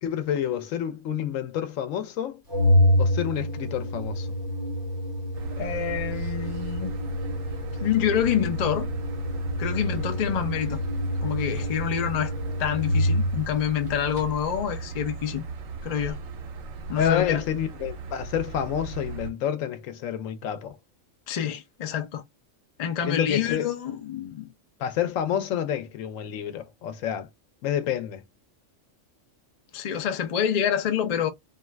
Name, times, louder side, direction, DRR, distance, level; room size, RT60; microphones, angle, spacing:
voice 1, 0.0-2.4 3.0-4.3 17.0-20.8 23.1-23.7 24.8-27.3 27.6-28.2, left 9 dB, 85° left, 1.0 m, -29 dB
Organ, 2.5-13.5, left 1 dB, 20° right, 1.4 m, -27 dB
sound 1, 5.3-19.3, right 4 dB, 70° right, 0.9 m, -37 dB
voice 2, 5.6-7.0 7.8-8.9 9.6-10.8 11.2-12.3 12.6-15.4 15.8-16.2 16.9-17.4 21.3-22.2 22.8-24.5 29.7-31.3, left 9 dB, 50° left, 0.5 m, -27 dB
2.5 x 2.3 x 3.2 m
omnidirectional pair, 1.3 m